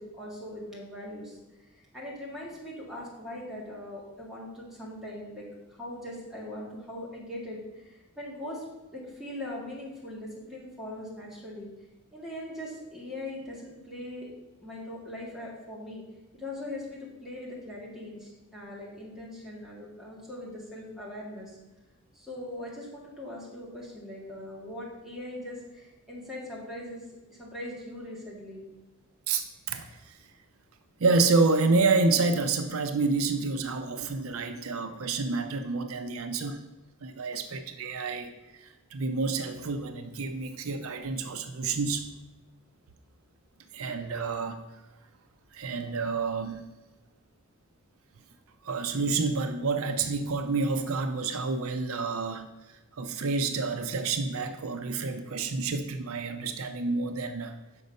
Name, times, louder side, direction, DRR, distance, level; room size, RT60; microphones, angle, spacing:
voice 1, 0.0-1.7 1.9-8.7 8.9-11.7 12.1-14.3 14.6-16.0 16.3-21.6 22.1-27.0 27.3-28.7, left 1 dB, ahead, -6 dB, 2.0 m, -41 dB
voice 2, 29.3-30.2 31.0-36.6 37.0-42.1 43.7-44.6 45.5-46.6 48.6-52.5 53.0-57.6, right 3 dB, 80° right, 8 dB, 0.6 m, -28 dB
6.6 x 5.2 x 5.3 m, 1.1 s
head